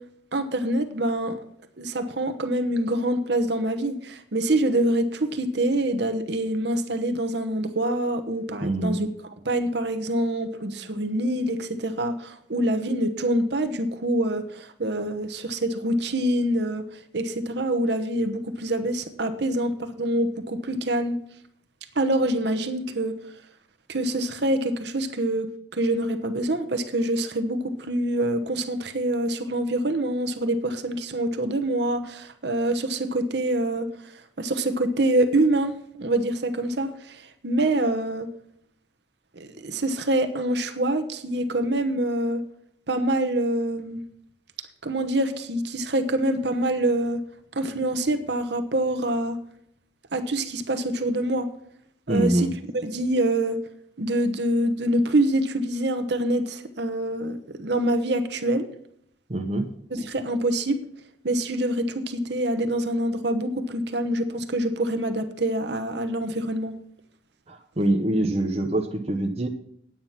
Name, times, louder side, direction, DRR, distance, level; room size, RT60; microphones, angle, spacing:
voice 1, 0.3-1.4 1.8-9.1 9.4-16.8 17.1-21.2 22.0-23.1 23.9-33.9 34.4-38.3 39.4-42.4 42.9-44.0 44.8-47.2 47.5-49.4 50.1-51.5 52.1-52.5 52.8-53.6 54.0-58.7 59.9-60.8 61.2-66.7, right 1 dB, 60° right, 7 dB, 1.0 m, -25 dB
voice 2, 8.6-9.0 52.1-52.5 59.3-59.7 67.5-69.5, right 1 dB, 35° right, 3 dB, 0.8 m, -24 dB
9.5 x 9.0 x 5.8 m, 0.69 s
head